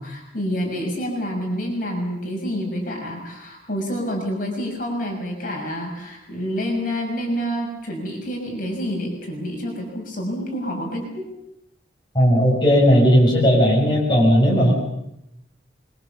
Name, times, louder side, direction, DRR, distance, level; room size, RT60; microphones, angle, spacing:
voice 1, 0.0-11.3, equal, 50° left, 0 dB, 6.2 m, -28 dB
voice 2, 12.1-14.7, equal, 25° left, -3 dB, 6.6 m, -16 dB
24.5 x 23.0 x 7.2 m, 0.83 s
head